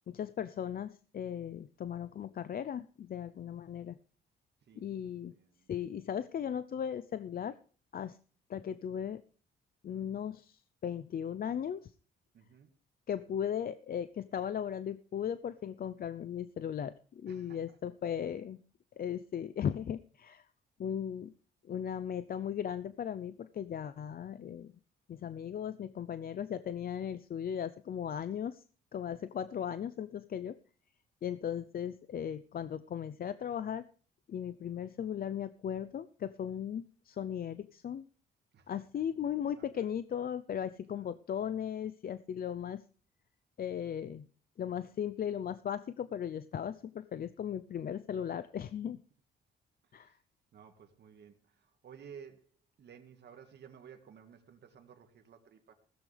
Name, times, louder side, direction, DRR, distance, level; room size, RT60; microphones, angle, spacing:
voice 1, 0.1-4.0 4.8-5.3 5.7-7.6 7.9-8.2 8.5-9.2 9.8-11.9 13.1-18.6 19.0-20.4 20.8-21.3 21.7-24.7 25.1-28.6 28.9-30.5 31.2-33.8 34.3-38.1 38.7-42.8 43.6-44.3 44.6-49.0 49.9-50.2, left 9 dB, 50° left, 14 dB, 0.6 m, -37 dB
voice 2, 5.3-5.7 12.3-12.7 17.3-17.6 38.5-38.7 39.6-39.9 40.9-41.1 50.0-50.1 50.5-51.3 51.8-52.4 52.8-55.7, right 7 dB, 60° right, 5 dB, 1.9 m, -54 dB
15.5 x 14.0 x 3.4 m, 0.42 s
cardioid pair, 90°, 20 cm